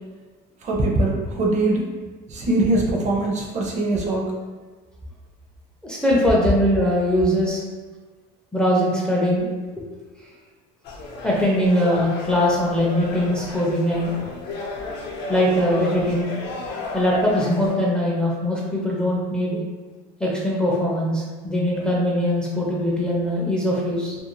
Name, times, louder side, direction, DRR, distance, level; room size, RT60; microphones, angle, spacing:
voice 1, 0.6-1.8 2.3-4.3, right 2 dB, 40° right, -1 dB, 0.6 m, -22 dB
voice 2, 5.8-7.6 8.5-9.5 9.8-9.9 10.2-10.3 11.2-14.1 15.3-16.3 16.9-19.6 20.2-24.2, equal, 5° left, -5 dB, 0.4 m, -21 dB
sound 1, 10.8-17.7, left 3 dB, 65° left, 0.6 m, -33 dB
2.5 x 2.0 x 3.0 m, 1.4 s
cardioid pair, 130°, 19 cm